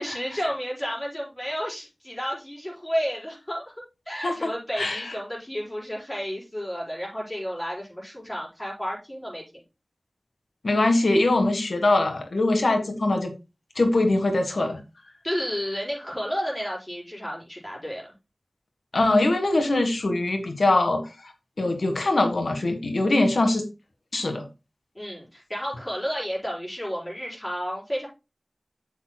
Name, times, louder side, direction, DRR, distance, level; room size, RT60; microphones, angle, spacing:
voice 1, 0.0-3.6 4.1-9.4 15.2-18.1 24.9-28.1, equal, 20° left, -5 dB, 4.9 m, -31 dB
voice 2, 10.6-13.3 13.8-14.8 18.9-21.0 21.6-23.7 24.1-24.5, left 2 dB, 80° left, 6 dB, 1.5 m, -22 dB
8.6 x 7.2 x 2.2 m, 0.27 s
wide cardioid pair, 50°, 0 cm